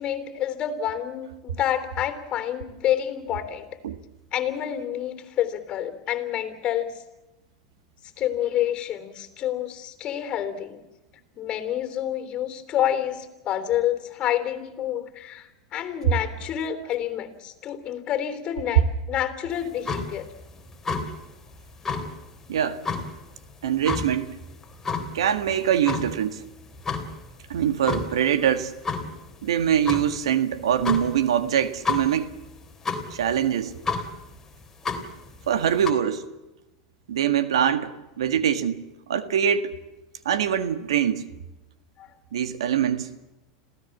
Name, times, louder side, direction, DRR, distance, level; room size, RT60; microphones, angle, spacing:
voice 1, 0.0-3.7 4.3-7.0 8.2-10.8 11.4-20.3 42.0-42.1, left 11 dB, 40° left, 9 dB, 3.5 m, -28 dB
sound 1, 19.5-35.9, left 4 dB, 15° left, 3.4 m, -33 dB
voice 2, 22.5-22.8 23.6-24.4 25.1-26.4 27.5-28.7 29.4-32.3 33.1-33.7 35.5-36.2 37.1-37.9 38.2-39.7 40.3-41.3 42.3-43.1, right 9 dB, 90° right, 10 dB, 1.8 m, -23 dB
27.0 x 16.5 x 7.3 m, 1.0 s
hypercardioid pair, 115°, 3 cm